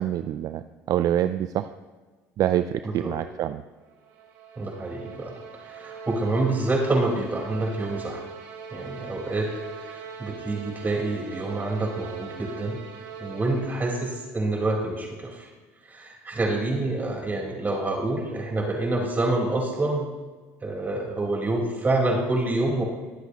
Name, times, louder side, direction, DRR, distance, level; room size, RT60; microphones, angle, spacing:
voice 1, 0.0-1.7 2.4-3.6, right 11 dB, 55° right, 11 dB, 0.5 m, -26 dB
sound 1, 3.9-14.4, right 6 dB, 70° right, 3.0 m, -41 dB
voice 2, 4.6-8.2 8.7-12.8 13.2-15.5 15.8-20.1 20.6-22.8, right 2 dB, 25° right, -1 dB, 4.7 m, -27 dB
22.5 x 8.0 x 3.1 m, 1.3 s
supercardioid pair, 80°, 7 cm